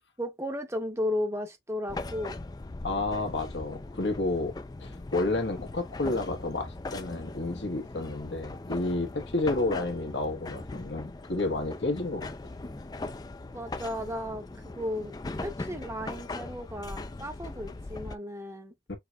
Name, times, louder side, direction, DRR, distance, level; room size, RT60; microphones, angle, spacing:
voice 1, 0.2-2.4 9.5-9.8 13.5-15.1 15.4-18.7, left 1 dB, 15° right, 0.8 m, -35 dB
sound 1, 1.9-18.2, left 2 dB, 20° left, 0.4 m, -40 dB
voice 2, 2.8-4.5 4.8-12.3 18.9-19.0, left 2 dB, 90° left, 1.3 m, -30 dB
5.8 x 2.8 x 2.3 m
head